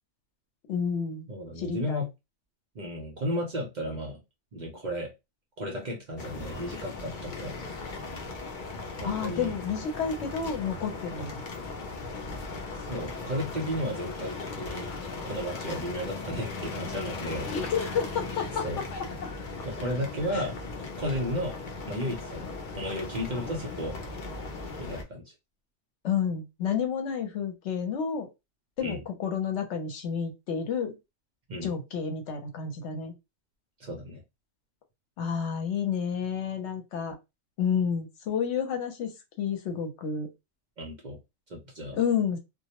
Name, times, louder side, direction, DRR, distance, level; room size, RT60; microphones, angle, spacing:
voice 1, 0.7-1.3 1.6-2.0 9.0-11.4 17.5-18.8 26.0-28.3 28.8-31.0 31.6-33.1 35.2-37.1 37.6-39.1 39.4-40.3 41.9-42.4, left 7 dB, 75° left, 0.9 m, -30 dB
voice 2, 1.3-2.1 2.7-4.2 4.5-5.1 5.6-7.6 9.0-9.5 11.2-11.3 12.8-14.9 15.2-17.5 18.6-18.8 19.6-21.6 21.9-24.0 24.8-25.3 28.8-29.0 31.5-31.7 33.8-34.2 40.8-41.2 41.5-42.0, equal, 50° right, 0.6 m, -34 dB
sound 1, 6.2-25.0, left 3 dB, 55° left, 0.6 m, -38 dB
2.2 x 2.0 x 2.8 m
omnidirectional pair, 1.2 m